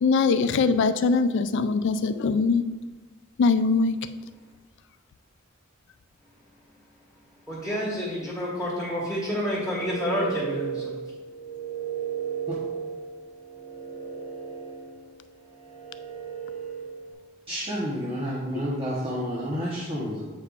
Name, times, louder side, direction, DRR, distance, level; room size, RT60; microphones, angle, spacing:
voice 1, 0.0-2.6 3.4-3.9, left 4 dB, 60° left, 11 dB, 0.3 m, -22 dB
voice 2, 7.5-11.0, equal, 5° right, -7 dB, 1.7 m, -29 dB
sound 1, 9.3-17.1, right 7 dB, 50° right, 1.3 m, -35 dB
voice 3, 17.5-20.2, equal, 25° right, -6 dB, 1.0 m, -30 dB
8.2 x 5.4 x 2.5 m, 1.2 s
head